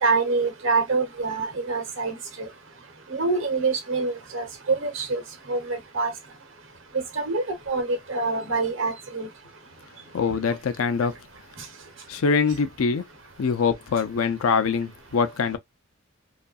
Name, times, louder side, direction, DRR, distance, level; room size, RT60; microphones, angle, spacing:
voice 1, 0.0-2.5 3.1-5.2 5.5-6.1 6.9-9.3, right 3 dB, 70° right, 0.9 m, -26 dB
voice 2, 10.1-11.2 12.1-13.0 13.4-15.6, left 5 dB, 85° left, 0.5 m, -23 dB
2.6 x 2.4 x 2.3 m
head